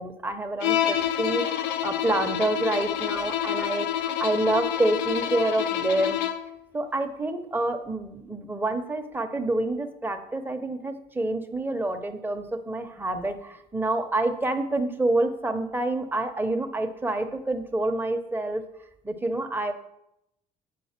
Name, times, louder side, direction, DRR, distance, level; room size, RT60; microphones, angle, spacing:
voice 1, 0.0-6.2 6.7-18.6 19.0-19.7, right 2 dB, 10° right, 6 dB, 0.9 m, -27 dB
Bowed string instrument, 0.6-6.5, left 11 dB, 90° left, 0.6 m, -28 dB
8.4 x 5.1 x 5.9 m, 0.82 s
cardioid pair, 110°, 17 cm